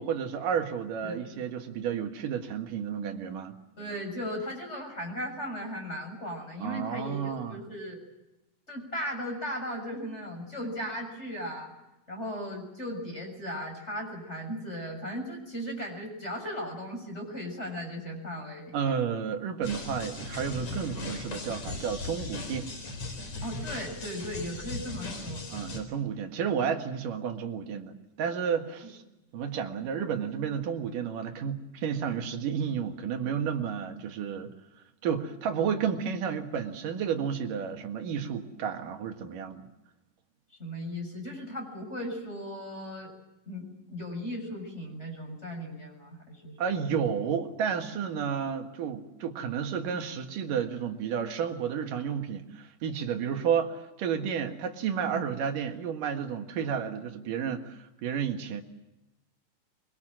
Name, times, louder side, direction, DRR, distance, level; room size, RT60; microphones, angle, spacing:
voice 1, 0.0-3.5 6.6-7.6 18.7-22.7 25.5-29.0 29.3-34.5 35.0-39.7 46.6-58.6, right 7 dB, 90° right, 5 dB, 3.4 m, -31 dB
voice 2, 3.8-8.0 8.7-11.7 12.1-18.8 23.4-25.4 28.8-28.9 40.6-43.1 43.5-46.8, equal, 20° left, 3 dB, 7.2 m, -37 dB
sound 1, 19.6-25.8, left 2 dB, 60° left, 5.7 m, -38 dB
24.5 x 23.5 x 7.6 m, 0.95 s
omnidirectional pair, 3.7 m